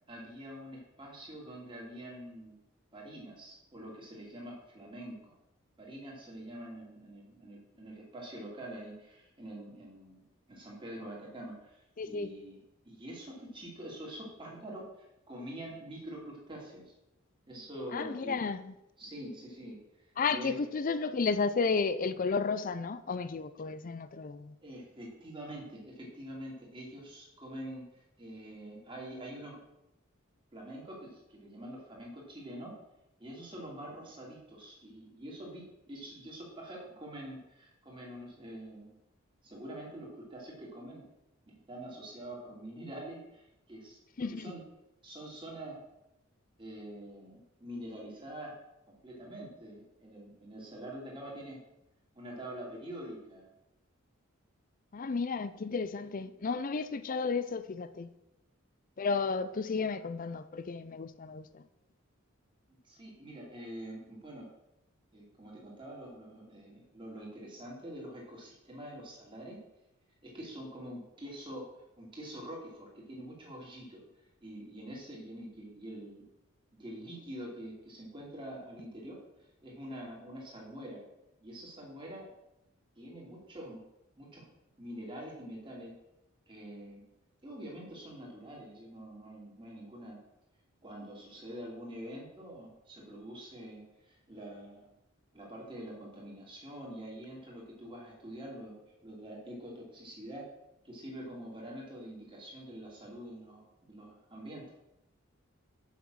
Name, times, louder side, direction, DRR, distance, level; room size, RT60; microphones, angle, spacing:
voice 1, 0.1-2.6 2.9-5.4 5.8-12.6 12.8-16.9 17.5-18.3 19.0-19.8 20.3-20.6 24.6-29.6 30.5-32.7 33.2-38.9 39.4-41.0 41.5-44.6 45.0-45.8 46.6-48.6 48.9-51.6 52.1-53.5 62.8-64.5 65.1-69.6 70.2-71.6 72.0-74.0 74.4-76.2 76.8-79.2 79.6-81.0 81.4-82.3 83.0-83.8 84.2-84.5 84.8-85.9 86.5-87.0 87.4-90.2 90.8-94.9 95.3-98.7 99.0-100.4 100.8-104.6, right 1 dB, 25° right, 2.7 m, -45 dB
voice 2, 12.0-12.3 17.9-18.7 20.2-24.5 44.2-44.5 54.9-58.1 59.0-61.6, left 4 dB, 40° left, 0.5 m, -33 dB
7.2 x 5.9 x 6.2 m
head